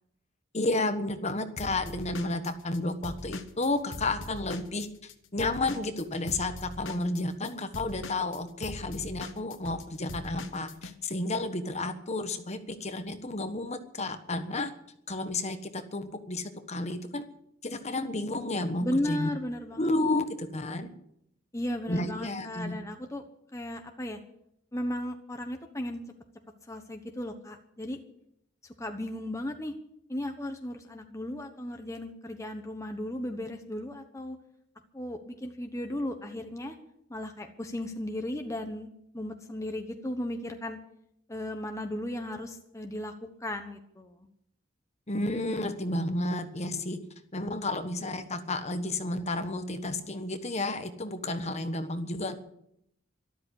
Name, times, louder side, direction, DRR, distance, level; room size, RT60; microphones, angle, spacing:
voice 1, 0.5-14.7 15.1-17.2 17.6-19.3 19.8-20.9 21.9-22.8 45.1-47.0 47.3-52.4, left 2 dB, 35° left, 8 dB, 1.3 m, -32 dB
Drum kit / Drum, 1.6-5.1 5.4-10.9, left 2 dB, 70° left, 1.4 m, -41 dB
voice 2, 18.8-19.9 21.5-23.2 23.5-24.2 24.7-26.0 26.7-28.0 28.8-29.7 30.1-34.4 34.9-36.8 37.1-38.9 39.1-40.8 41.3-43.1 43.4-44.2, left 1 dB, 15° left, 4 dB, 1.1 m, -35 dB
13.0 x 12.5 x 8.3 m, 0.74 s
head